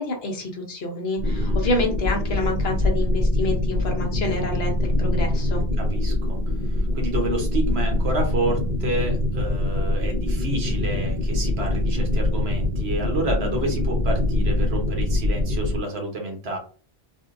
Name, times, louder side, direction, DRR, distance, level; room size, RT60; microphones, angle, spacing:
voice 1, 0.0-5.6, left 2 dB, 70° left, 2 dB, 1.2 m, -28 dB
sound 1, 1.2-15.8, left 1 dB, 45° right, 1.8 m, -24 dB
voice 2, 1.2-1.6 5.8-6.4 6.6-16.6, right 2 dB, 75° right, 1 dB, 1.3 m, -29 dB
3.6 x 2.7 x 2.5 m, 0.39 s
omnidirectional pair, 1.1 m